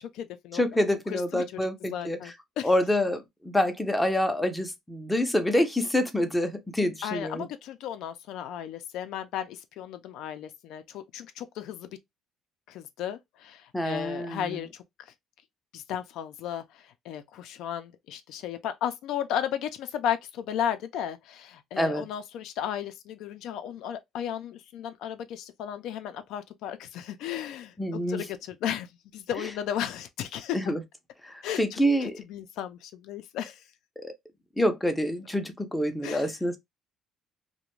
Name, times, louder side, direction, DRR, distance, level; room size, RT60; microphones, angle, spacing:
voice 1, 0.0-0.6 1.1-1.6 1.9-2.7 7.0-11.9 12.7-14.8 15.7-27.7 28.1-28.9 29.1-30.6 31.4-33.6 36.0-36.3, left 10 dB, 75° left, 0.3 m, -34 dB
voice 2, 0.5-2.2 2.6-7.5 13.7-14.6 21.8-22.0 27.8-28.2 30.5-30.8 31.2-32.2 34.0-34.1 34.6-36.6, left 1 dB, 5° left, 0.4 m, -27 dB
2.4 x 2.1 x 2.9 m
cardioid pair, 145°, 0 cm